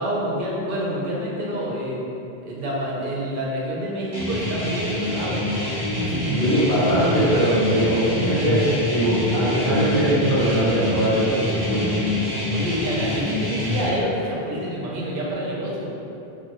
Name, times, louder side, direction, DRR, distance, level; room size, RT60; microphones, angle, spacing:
voice 1, 0.0-2.1 2.4-5.4 6.0-6.4 12.5-15.9, equal, 60° right, -4 dB, 0.7 m, -27 dB
sound 1, 4.1-13.9, left 1 dB, 20° right, 0.7 m, -26 dB
voice 2, 6.3-11.9, right 1 dB, 35° left, -13 dB, 1.2 m, -21 dB
2.6 x 2.5 x 2.9 m, 2.8 s
omnidirectional pair, 1.0 m